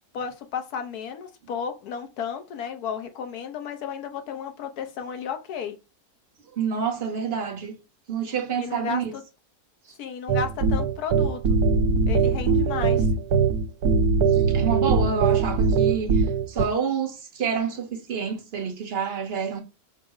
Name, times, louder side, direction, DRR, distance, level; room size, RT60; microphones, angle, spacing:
voice 1, 0.1-5.8 8.6-9.2 10.0-11.4 12.1-13.1, left 7 dB, 80° left, 1.2 m, -33 dB
voice 2, 6.5-7.8 8.1-9.1 14.3-19.6, right 6 dB, 45° right, 1.0 m, -28 dB
sound 1, 10.3-16.7, right 5 dB, 80° right, 1.1 m, -21 dB
5.4 x 2.0 x 4.7 m
omnidirectional pair, 1.6 m